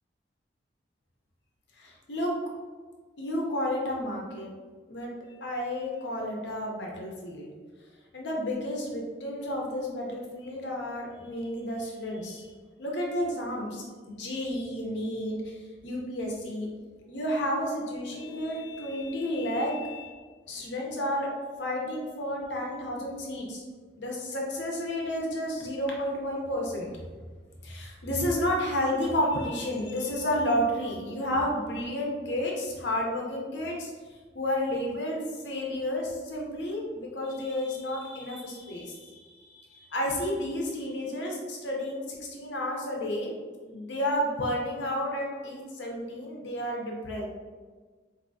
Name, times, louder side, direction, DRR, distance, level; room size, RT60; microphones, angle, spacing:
voice 1, 1.7-2.3 3.2-4.5 4.9-5.1 5.4-7.5 8.1-12.4 12.8-16.7 17.1-20.1 20.5-21.3 21.6-23.6 24.0-26.9 27.6-33.9 34.3-43.3 43.7-47.2, left 1 dB, 80° left, -1 dB, 0.7 m, -31 dB
4.5 x 2.7 x 2.6 m, 1.4 s
head